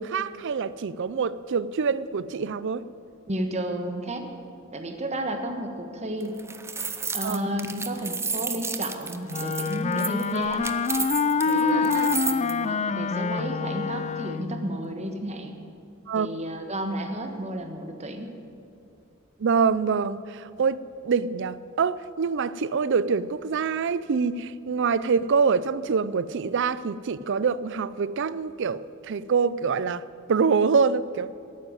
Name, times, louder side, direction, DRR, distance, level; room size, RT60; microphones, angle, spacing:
voice 1, 0.0-2.8 7.2-7.4 11.5-12.1 16.1-16.3 19.4-20.8 21.0-31.3, right 5 dB, 60° right, 17 dB, 0.4 m, -25 dB
voice 2, 3.3-4.3 4.7-6.4 7.1-10.6 11.4-15.6 16.1-18.3, right 1 dB, 30° right, 5 dB, 1.4 m, -32 dB
sound 1, 6.2-12.5, right 5 dB, 15° right, 0.6 m, -32 dB
Wind instrument woodwind instrument, 9.3-14.6, left 5 dB, 35° left, 0.4 m, -26 dB
13.0 x 9.4 x 9.2 m, 2.6 s
head